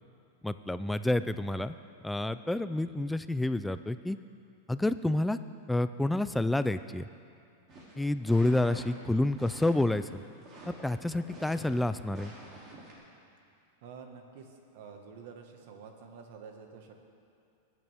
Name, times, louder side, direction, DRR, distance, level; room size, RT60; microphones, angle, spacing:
voice 1, 0.4-1.8 2.0-4.2 4.7-5.4 5.7-7.1 8.0-10.2 10.8-12.3, left 1 dB, 5° left, 12 dB, 0.3 m, -29 dB
sound 1, 7.7-12.9, right 2 dB, 30° right, 2.9 m, -49 dB
voice 2, 13.8-17.0, right 5 dB, 60° right, 4 dB, 1.6 m, -49 dB
20.5 x 9.7 x 3.5 m, 2.6 s
supercardioid pair, 150°, 0 cm